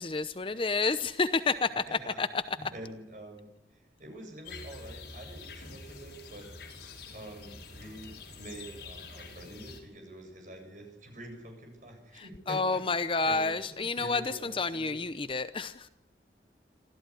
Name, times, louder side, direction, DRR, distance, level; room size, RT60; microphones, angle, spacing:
voice 1, 0.0-2.4 12.5-15.9, left 3 dB, 30° left, 12 dB, 0.8 m, -30 dB
voice 2, 2.6-6.5 7.1-12.8 13.2-15.0, right 1 dB, 45° right, 3 dB, 8.0 m, -46 dB
sound 1, 4.4-9.8, left 3 dB, 70° left, 5.8 m, -46 dB
27.0 x 14.0 x 9.9 m, 0.85 s
head